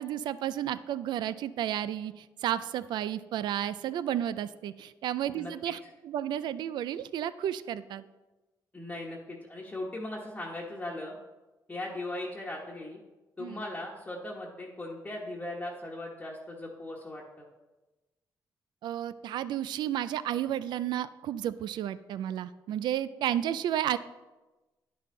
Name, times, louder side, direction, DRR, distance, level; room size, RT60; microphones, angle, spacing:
voice 1, 0.0-8.1 13.4-13.6 18.8-24.0, right 11 dB, 80° right, 15 dB, 0.4 m, -32 dB
voice 2, 5.3-5.7 8.7-11.2 11.7-13.0 13.4-17.5, left 1 dB, 20° left, -3 dB, 1.2 m, -38 dB
10.5 x 5.5 x 3.8 m, 1.1 s
cardioid pair, 90°, 8 cm